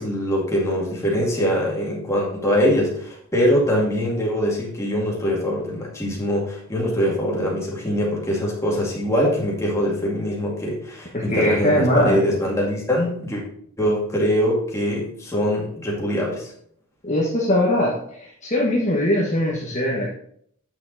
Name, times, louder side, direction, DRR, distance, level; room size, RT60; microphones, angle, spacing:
voice 1, 0.0-13.4 13.8-16.5, equal, 15° left, -3 dB, 2.2 m, -23 dB
voice 2, 11.1-12.4 17.0-20.1, left 1 dB, 30° left, -4 dB, 1.3 m, -21 dB
8.6 x 6.4 x 4.0 m, 0.66 s
head